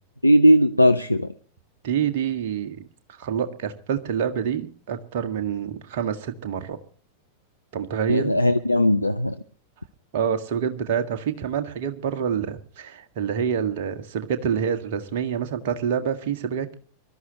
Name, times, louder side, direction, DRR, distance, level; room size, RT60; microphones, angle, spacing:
voice 1, 0.2-1.3 8.1-9.3, equal, 85° left, 8 dB, 0.6 m, -18 dB
voice 2, 1.8-2.9 3.2-6.8 7.7-8.3 10.1-16.7, right 8 dB, 50° right, 8 dB, 1.7 m, -27 dB
24.0 x 13.0 x 2.9 m, 0.42 s
figure-of-eight pair, 90°, 0 cm